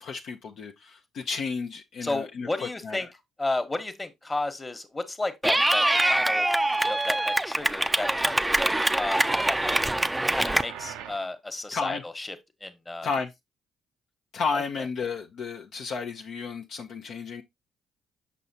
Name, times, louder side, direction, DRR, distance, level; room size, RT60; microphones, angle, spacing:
voice 1, 0.0-3.0 11.7-12.0 13.0-13.3 14.3-17.4, left 5 dB, 60° left, 0.6 m, -32 dB
voice 2, 2.0-3.1 3.4-6.5 6.8-9.6 10.3-12.4 12.6-13.1 14.5-14.6, left 2 dB, 20° left, 1.2 m, -33 dB
Clapping / Cheering, 5.4-10.6, right 1 dB, 15° right, 0.4 m, -24 dB
sound 1, 9.1-11.3, right 9 dB, 75° right, 0.5 m, -44 dB
6.2 x 5.7 x 2.7 m
hypercardioid pair, 50°, 0 cm